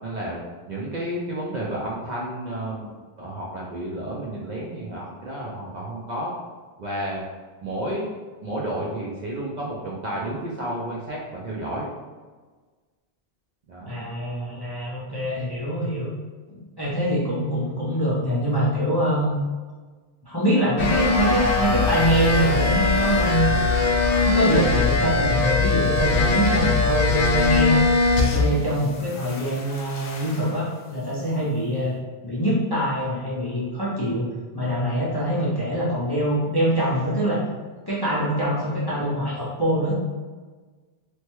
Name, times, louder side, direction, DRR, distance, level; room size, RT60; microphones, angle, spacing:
voice 1, 0.0-0.4 0.7-6.3 6.8-7.2 7.6-8.1 8.4-11.9 13.7-13.9, right 1 dB, 55° right, -4 dB, 0.5 m, -31 dB
voice 2, 13.8-16.1 16.5-19.4 20.3-23.5 24.2-27.8 28.2-32.0 32.2-34.3 34.5-37.4 37.9-39.9, equal, 35° left, -8 dB, 0.4 m, -24 dB
sound 1, 20.8-28.7 28.9-30.5, left 3 dB, 65° left, 0.8 m, -21 dB
3.0 x 2.1 x 2.9 m, 1.4 s
omnidirectional pair, 1.1 m